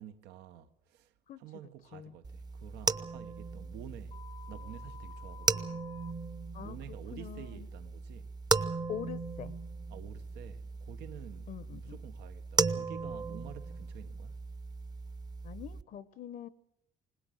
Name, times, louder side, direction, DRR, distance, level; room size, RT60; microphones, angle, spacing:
voice 1, 0.0-4.2 4.5-5.8 6.6-8.3 9.9-14.4, right 11 dB, 85° right, 1.4 m, -50 dB
sound 1, 2.2-15.8, right 4 dB, 25° right, 0.8 m, -36 dB
sound 2, 4.1-6.1, left 8 dB, 35° left, 0.8 m, -51 dB
voice 2, 7.1-7.7 8.9-9.5 11.5-12.0 15.4-16.5, left 10 dB, 55° left, 0.9 m, -43 dB
21.5 x 19.5 x 7.8 m
cardioid pair, 110°, 17 cm